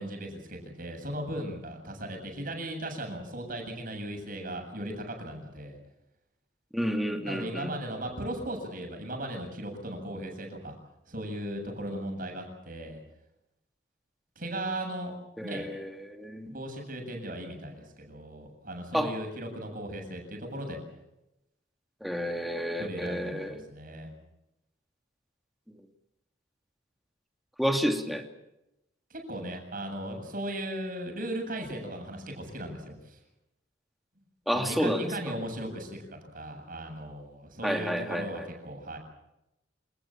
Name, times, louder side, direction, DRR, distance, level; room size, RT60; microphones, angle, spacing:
voice 1, 0.0-5.8 7.2-10.7 11.1-13.0 14.4-15.1 15.4-15.7 16.5-20.8 22.8-24.1 29.1-33.2 34.5-39.0, right 1 dB, 50° right, 3 dB, 7.9 m, -37 dB
voice 2, 6.7-7.7 15.4-16.5 18.9-19.1 22.0-23.6 27.6-28.2 34.5-35.1 37.6-38.5, equal, ahead, 4 dB, 2.7 m, -30 dB
28.0 x 19.0 x 7.5 m, 0.89 s
head